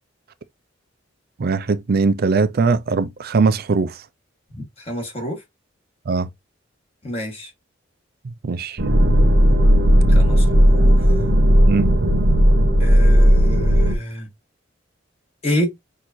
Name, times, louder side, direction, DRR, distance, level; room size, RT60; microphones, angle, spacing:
voice 1, 1.4-4.0 6.1-6.3 8.2-8.8 11.7-11.9, right 4 dB, 55° right, 0.5 m, -20 dB
voice 2, 4.5-5.4 7.0-7.5 10.1-11.1 12.8-14.3 15.4-15.7, equal, 35° left, 1.9 m, -28 dB
sound 1, 8.8-14.0, equal, 75° right, 1.2 m, -14 dB
6.1 x 2.8 x 2.5 m
head